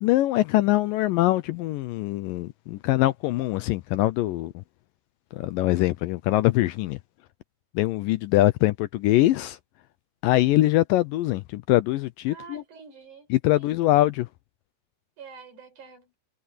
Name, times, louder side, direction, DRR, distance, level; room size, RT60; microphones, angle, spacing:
voice 1, 0.0-4.6 5.3-7.0 7.7-9.6 10.2-12.6 13.3-14.3, left 16 dB, 80° left, 2.1 m, -23 dB
voice 2, 12.3-13.7 15.2-16.1, right 5 dB, 55° right, 6.4 m, -47 dB
omnidirectional pair, 4.3 m